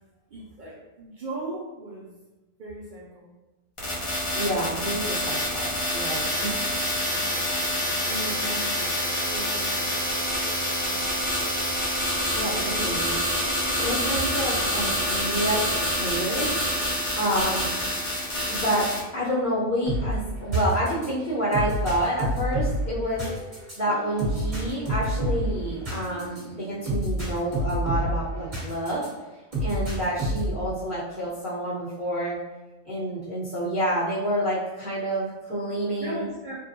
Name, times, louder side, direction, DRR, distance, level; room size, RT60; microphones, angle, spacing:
voice 1, 0.3-2.1 2.6-3.3 7.2-8.9 9.2-10.1 10.8-11.1 12.4-12.8 13.3-13.5 36.0-36.6, right 1 dB, 65° right, -5 dB, 0.4 m, -38 dB
sound 1, 3.8-19.0, equal, 35° left, 0.5 m, -27 dB
voice 2, 4.3-6.6 12.3-13.2 13.8-16.5 17.1-17.7 18.5-23.2 23.7-29.0 29.6-32.4 32.8-36.2, right 1 dB, 5° right, -11 dB, 0.9 m, -28 dB
sound 2, 19.9-29.1 29.5-30.6, right 1 dB, 30° right, 1.1 m, -29 dB
3.4 x 2.2 x 2.7 m, 1.1 s
omnidirectional pair, 1.4 m